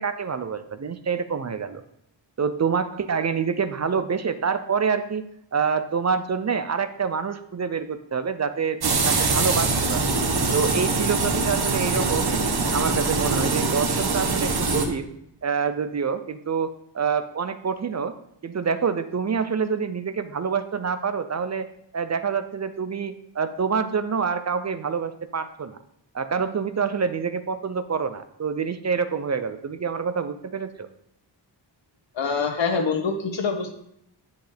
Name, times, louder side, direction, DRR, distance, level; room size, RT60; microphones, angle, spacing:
voice 1, 0.0-1.8 2.4-5.2 5.5-10.1 10.5-12.4 12.7-15.1 15.4-16.7 16.9-18.1 18.4-21.7 21.9-25.8 26.1-30.9, right 6 dB, 40° right, 11 dB, 0.5 m, -26 dB
sound 1, 8.8-14.8, right 3 dB, 55° right, 1.2 m, -23 dB
voice 2, 32.1-33.7, left 5 dB, 75° left, 3 dB, 1.5 m, -25 dB
10.5 x 7.6 x 3.4 m, 0.75 s
wide cardioid pair, 165°, 45 cm